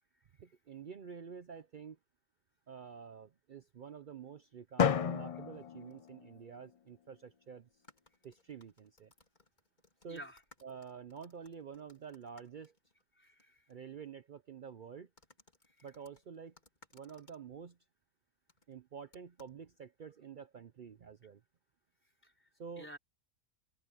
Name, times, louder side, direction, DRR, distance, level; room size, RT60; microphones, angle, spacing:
voice 1, 0.4-2.0 2.7-7.7 8.2-9.1 10.0-10.2 10.6-12.7 13.7-15.1 15.8-16.5 16.9-17.8 18.7-21.4 22.6-22.9, right 6 dB, 50° right, 0.7 m, -49 dB
Drum, 4.8-6.8, left 7 dB, 55° left, 0.4 m, -33 dB
sound 1, 4.9-5.2 5.9-6.1 6.4-6.5 7.7-13.4 13.7-13.8 15.2-17.4 18.5-18.7 19.1-19.6, left 2 dB, 35° left, 3.7 m, -65 dB
voice 2, 10.1-10.4 13.2-13.6 15.8-15.9 22.2-22.5 22.8-23.0, equal, 10° left, 4.1 m, -51 dB
open air
omnidirectional pair, 1.3 m